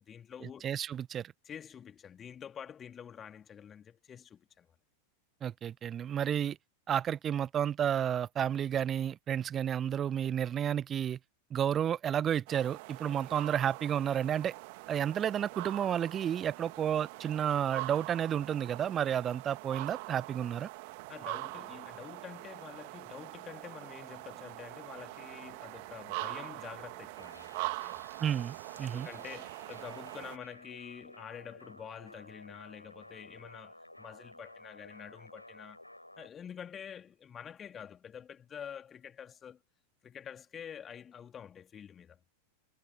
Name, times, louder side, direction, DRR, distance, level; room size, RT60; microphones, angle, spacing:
voice 1, 0.0-0.6 1.4-4.7 13.1-13.2 20.8-28.0 28.8-35.8 36.2-39.6 40.0-42.2, left 8 dB, 25° left, 2.6 m, -48 dB
voice 2, 0.6-1.3 5.4-6.6 6.9-11.2 11.5-14.5 14.9-20.7 28.2-29.1, right 9 dB, 25° right, 0.9 m, -31 dB
sound 1, 12.5-30.4, right 26 dB, 50° right, 2.2 m, -43 dB
sound 2, 27.2-36.3, left 1 dB, 85° left, 7.9 m, -54 dB
figure-of-eight pair, 90°, 0 cm